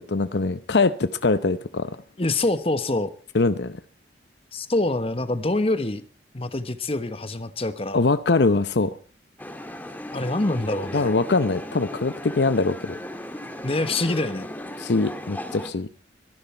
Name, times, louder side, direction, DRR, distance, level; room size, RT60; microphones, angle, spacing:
voice 1, 0.0-2.0 3.3-3.8 7.9-8.9 10.9-13.0 14.8-15.9, left 3 dB, 70° left, 0.7 m, -22 dB
voice 2, 2.2-3.1 4.5-6.0 6.3-8.1 10.1-11.1 13.6-14.5, left 2 dB, 30° left, 1.1 m, -25 dB
sound 1, 9.4-15.7, left 1 dB, 10° left, 1.7 m, -36 dB
24.0 x 11.0 x 4.4 m
head